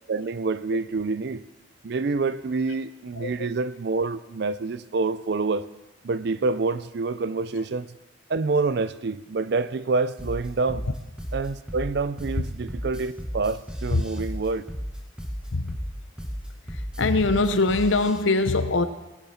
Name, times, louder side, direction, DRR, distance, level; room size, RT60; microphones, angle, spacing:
voice 1, 0.1-1.4 1.8-5.7 6.0-7.9 8.3-10.9 11.3-14.7, right 3 dB, 55° right, 0.4 m, -27 dB
voice 2, 3.2-3.5 13.9-14.0 15.5-15.8 16.7-18.9, left 3 dB, 75° left, 0.8 m, -23 dB
sound 1, 10.2-18.2, equal, 5° right, 1.0 m, -34 dB
19.0 x 7.2 x 5.7 m
head